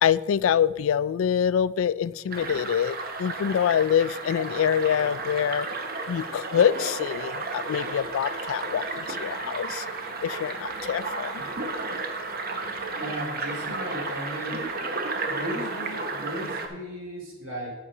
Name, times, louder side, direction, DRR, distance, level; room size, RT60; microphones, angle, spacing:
voice 1, 0.0-5.7 6.1-9.9 10.2-11.4, left 8 dB, 75° left, 19 dB, 0.3 m, -25 dB
sound 1, 2.3-16.7, right 3 dB, 45° right, 0.9 m, -33 dB
voice 2, 12.9-14.7 15.2-17.7, equal, 90° right, -2 dB, 3.2 m, -36 dB
8.5 x 5.9 x 5.4 m, 1.1 s
head